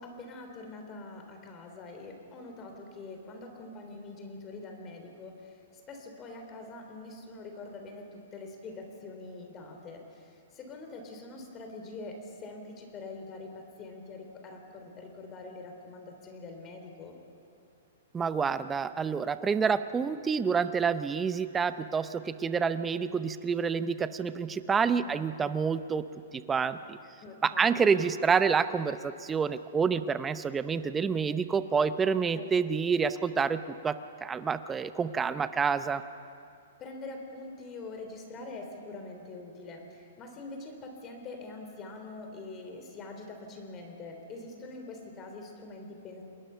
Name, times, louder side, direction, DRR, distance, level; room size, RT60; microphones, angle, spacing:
voice 1, 0.0-17.2 24.9-25.3 27.2-27.8 32.3-32.7 36.8-46.2, left 3 dB, 25° left, 4 dB, 3.7 m, -44 dB
voice 2, 18.1-26.0 26.3-27.0 27.4-34.0 34.2-36.0, right 6 dB, 15° right, 12 dB, 0.7 m, -28 dB
28.5 x 20.5 x 5.8 m, 2.5 s
hypercardioid pair, 140°, 0 cm